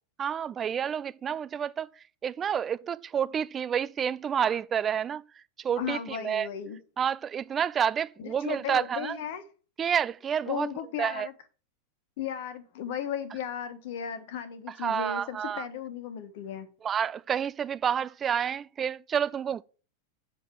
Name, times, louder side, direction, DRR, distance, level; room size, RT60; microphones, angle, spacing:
voice 1, 0.2-1.9 2.2-5.2 5.6-6.5 7.0-9.2 9.8-10.7 11.0-11.3 14.8-15.7 16.8-19.6, right 8 dB, 25° right, 0.4 m, -29 dB
voice 2, 5.8-6.8 8.2-9.4 10.5-11.3 12.2-16.7, left 8 dB, 50° left, 1.4 m, -35 dB
8.4 x 5.2 x 7.8 m
figure-of-eight pair, 90°, 0 cm